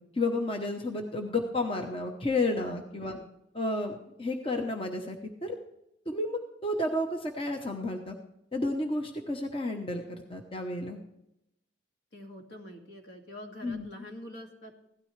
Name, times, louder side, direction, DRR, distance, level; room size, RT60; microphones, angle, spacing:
voice 1, 0.1-3.2 3.5-5.6 6.1-8.2 8.5-11.0 13.6-13.9, left 2 dB, 30° left, 3 dB, 0.9 m, -31 dB
voice 2, 12.1-14.8, left 1 dB, 70° left, 2 dB, 2.3 m, -45 dB
16.5 x 12.5 x 3.3 m, 0.84 s
head